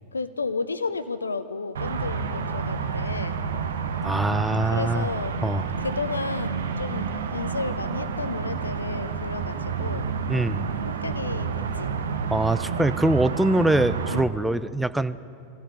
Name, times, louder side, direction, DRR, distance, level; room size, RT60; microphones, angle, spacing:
voice 1, 0.1-3.4 4.7-5.4 5.8-10.1 11.0-11.9 14.1-14.3, left 4 dB, 75° left, 12 dB, 0.8 m, -32 dB
sound 1, 1.8-14.2, right 5 dB, 65° right, 1.0 m, -29 dB
voice 2, 4.0-5.1 5.4-5.7 10.3-10.7 12.3-15.2, right 2 dB, 5° right, 13 dB, 0.5 m, -23 dB
23.5 x 15.0 x 3.9 m, 2.5 s
figure-of-eight pair, 90°, 0 cm